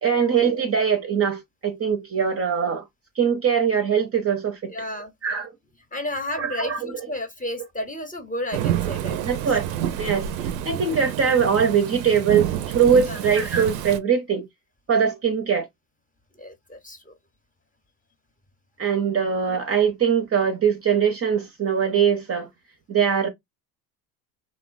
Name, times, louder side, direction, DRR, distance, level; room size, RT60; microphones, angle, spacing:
voice 1, 0.0-2.8 3.2-4.7 5.2-5.5 6.4-6.9 9.2-9.7 10.0-14.5 14.9-15.7 18.8-22.5 22.9-23.3, right 7 dB, 30° right, 0.6 m, -22 dB
voice 2, 4.7-5.1 5.9-9.6 13.1-13.2 16.4-17.1, left 1 dB, 15° left, 0.8 m, -32 dB
Thunderstorm / Rain, 8.5-14.0, right 11 dB, 75° right, 0.6 m, -28 dB
2.9 x 2.1 x 2.4 m
hypercardioid pair, 65°, 49 cm